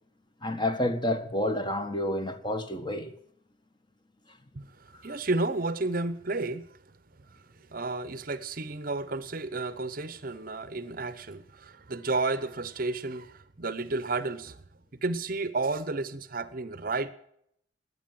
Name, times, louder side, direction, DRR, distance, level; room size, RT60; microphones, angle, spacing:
voice 1, 0.4-3.1, left 1 dB, 25° left, 1.4 m, -29 dB
voice 2, 4.5-6.7 7.7-14.6 15.0-17.1, right 3 dB, 45° right, 0.8 m, -32 dB
19.0 x 9.6 x 7.6 m
head